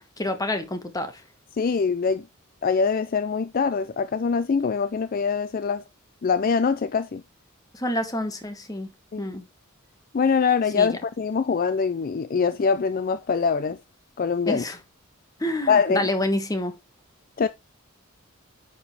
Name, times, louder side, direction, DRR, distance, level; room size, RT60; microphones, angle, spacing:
voice 1, 0.2-1.2 7.7-8.9 9.2-9.5 10.7-10.9 14.5-14.8 15.4-16.7, left 1 dB, 15° left, 1.3 m, -28 dB
voice 2, 1.6-2.2 2.6-5.8 6.2-7.2 9.1-9.3 10.1-13.8 14.2-14.6 15.7-16.1 17.4-17.5, left 5 dB, 40° left, 0.4 m, -23 dB
9.8 x 5.2 x 3.2 m
head